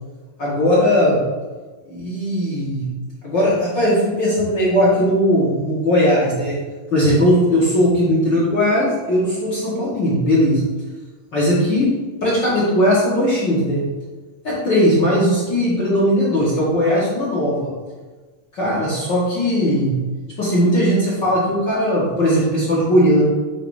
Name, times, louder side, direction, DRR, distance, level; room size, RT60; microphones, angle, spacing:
voice 1, 0.4-1.2 1.9-2.9 3.2-6.6 6.9-10.6 11.3-13.9 14.4-17.7 18.5-19.9 20.4-23.2, equal, 45° left, -8 dB, 1.5 m, -18 dB
8.8 x 3.1 x 4.8 m, 1.3 s
omnidirectional pair, 4.3 m